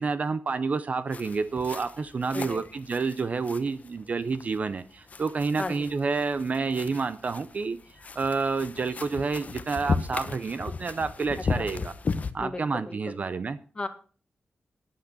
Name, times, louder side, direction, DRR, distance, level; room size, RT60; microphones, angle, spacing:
voice 1, 0.0-7.8 8.2-11.9 12.3-13.6, right 4 dB, 40° right, 13 dB, 0.6 m, -29 dB
sound 1, 1.1-12.3, left 4 dB, 40° left, 0.9 m, -36 dB
voice 2, 12.4-13.2 13.7-13.9, left 3 dB, 25° left, 8 dB, 1.5 m, -35 dB
10.5 x 8.5 x 6.8 m, 0.40 s
wide cardioid pair, 150°, 4 cm